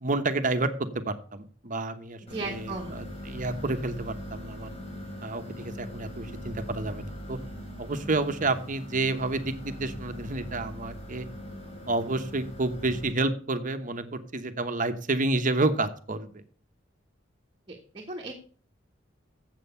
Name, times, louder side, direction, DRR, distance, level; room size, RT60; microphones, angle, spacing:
voice 1, 0.0-0.7 1.1-4.7 5.2-7.4 7.8-11.3 11.9-16.4, right 2 dB, 40° right, 9 dB, 1.0 m, -30 dB
sound 1, 2.3-13.1, equal, 30° left, 3.4 m, -41 dB
voice 2, 2.3-2.9 17.7-18.3, right 3 dB, 25° right, 1 dB, 1.4 m, -36 dB
7.7 x 7.6 x 7.0 m, 0.43 s
head